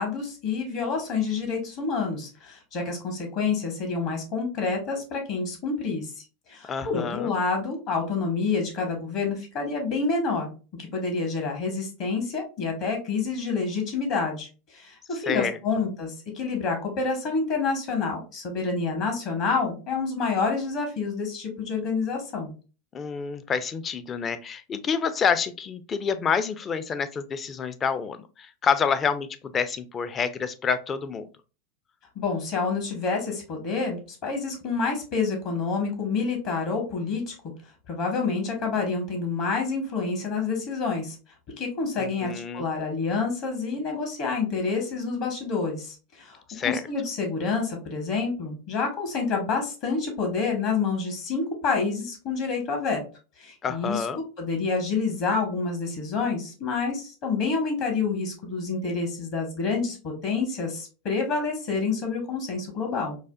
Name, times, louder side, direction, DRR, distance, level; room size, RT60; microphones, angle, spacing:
voice 1, 0.0-10.5 10.8-22.5 32.1-37.3 37.9-41.1 41.6-46.4 46.6-53.0 53.4-54.0 54.4-63.2, left 4 dB, 55° left, 2 dB, 1.2 m, -28 dB
voice 2, 6.6-7.3 15.1-15.6 22.9-31.3 42.0-42.7 46.5-46.9 53.6-54.2, left 6 dB, 30° left, 12 dB, 0.4 m, -28 dB
4.8 x 2.1 x 2.4 m, 0.34 s
hypercardioid pair, 95°, 0 cm